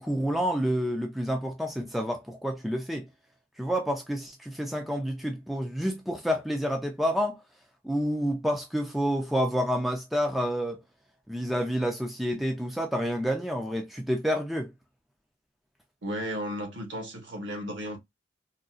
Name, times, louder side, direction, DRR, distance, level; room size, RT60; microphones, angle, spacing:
voice 1, 0.0-3.1 3.6-7.4 7.8-10.8 11.3-14.7, equal, ahead, 0.3 m, -29 dB
voice 2, 16.0-18.0, equal, 60° right, 1.2 m, -34 dB
3.8 x 2.3 x 2.3 m
head